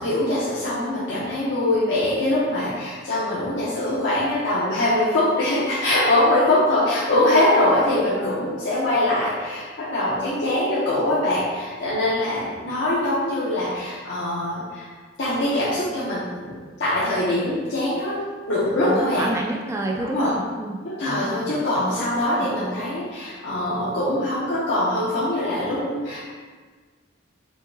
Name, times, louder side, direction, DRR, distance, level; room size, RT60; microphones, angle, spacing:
voice 1, 0.0-14.9 15.2-16.5 16.8-18.2 18.5-19.3 20.1-20.3 20.8-26.2, left 1 dB, 65° left, -9 dB, 0.9 m, -23 dB
voice 2, 18.8-22.1 22.4-22.5, right 2 dB, 15° right, 0 dB, 0.3 m, -30 dB
4.9 x 3.7 x 2.7 m, 1.5 s
head